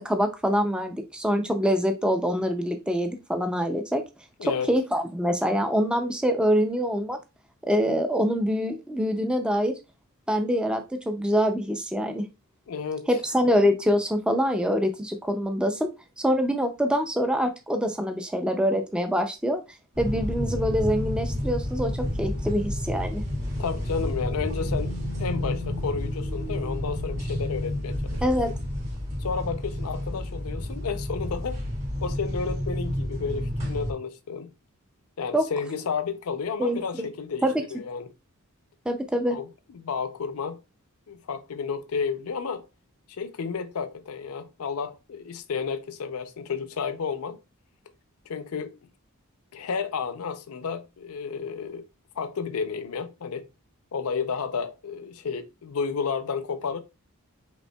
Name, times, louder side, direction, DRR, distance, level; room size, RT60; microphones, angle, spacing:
voice 1, 0.0-4.0 4.4-7.2 7.6-9.7 10.3-12.2 13.1-15.9 16.2-19.6 20.0-23.2 28.2-28.5 35.3-35.4 36.6-37.1 37.4-37.6 38.9-39.4, equal, 5° right, 0.3 m, -25 dB
voice 2, 12.7-13.1 23.6-28.2 29.2-31.6 32.0-34.5 35.2-38.1 39.3-39.5 39.7-40.6 41.1-42.7 43.1-47.4 48.3-48.7 49.5-51.8 52.2-53.5 53.9-56.8, left 5 dB, 75° left, 0.5 m, -31 dB
sound 1, 20.0-33.9, left 1 dB, 30° right, 1.6 m, -30 dB
5.2 x 3.4 x 2.2 m
head